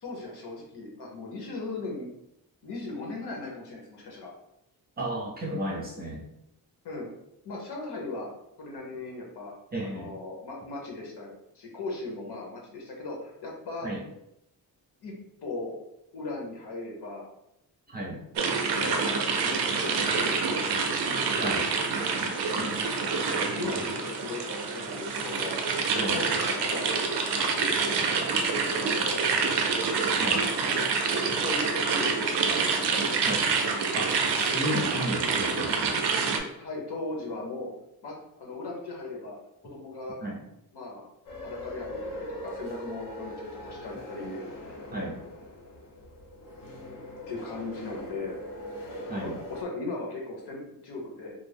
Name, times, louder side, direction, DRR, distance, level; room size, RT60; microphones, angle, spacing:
voice 1, 0.0-2.1 2.6-4.3 6.8-7.1 7.4-8.3 8.6-9.5 9.8-13.9 15.0-15.1 15.4-15.7 16.1-17.3 18.3-20.6 22.5-22.8 23.5-25.6 25.9-26.9 27.5-30.3 31.4-33.2 36.5-37.7 38.0-39.4 39.6-40.2 40.7-41.0 41.4-44.4 47.3-48.4 49.1-51.3, left 2 dB, 75° left, -1 dB, 0.9 m, -38 dB
voice 2, 5.0-6.2 9.7-10.1 13.8-14.0 17.9-18.2 21.3-21.7 25.9-26.2 30.2-30.4 33.2-33.4 33.9-36.0 40.2-40.4 44.9-45.2 49.1-49.4, right 1 dB, 25° right, -2 dB, 0.5 m, -33 dB
sound 1, 18.4-36.4, right 5 dB, 85° right, 0.5 m, -27 dB
sound 2, 41.2-49.6, left 1 dB, 55° left, 0.6 m, -41 dB
2.4 x 2.0 x 3.3 m, 0.82 s
wide cardioid pair, 150°, 40 cm